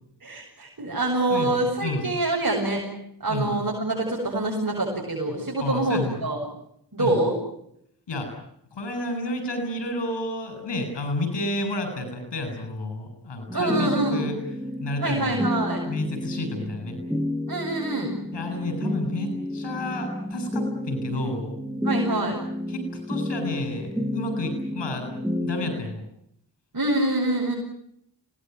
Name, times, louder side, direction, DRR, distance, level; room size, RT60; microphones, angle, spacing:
voice 1, 0.2-2.8 3.2-6.4 6.9-7.4 13.5-14.2 15.0-15.8 17.5-18.1 21.8-22.4 26.7-27.5, right 2 dB, 50° right, -2 dB, 8.0 m, -25 dB
voice 2, 1.3-2.1 3.3-3.6 5.6-6.2 7.0-7.2 8.1-8.3 8.7-14.4 14.8-15.5 15.8-17.0 18.3-21.5 22.7-25.1 25.4-26.0, left 2 dB, 90° left, 7 dB, 7.6 m, -31 dB
sound 1, 13.5-25.8, left 1 dB, ahead, 7.2 m, -31 dB
26.5 x 19.0 x 9.3 m, 0.73 s
cardioid pair, 40°, 42 cm